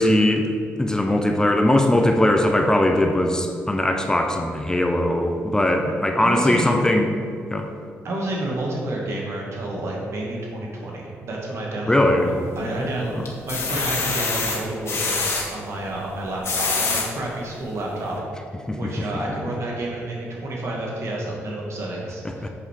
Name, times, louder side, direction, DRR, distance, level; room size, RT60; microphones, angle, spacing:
voice 1, 0.0-7.2 7.5-7.7 11.9-12.4 13.1-13.3 18.7-19.0 22.2-22.5, left 1 dB, 15° left, 4 dB, 0.8 m, -20 dB
voice 2, 6.2-6.9 8.0-18.2 18.8-22.5, right 1 dB, 60° right, -2 dB, 2.2 m, -30 dB
sound 1, 12.2-12.8 13.3-15.4 16.2-17.1 17.7-17.8 18.1-18.2, left 4 dB, 50° left, 1.7 m, -25 dB
7.9 x 5.5 x 4.8 m, 2.3 s
cardioid pair, 75°, 5 cm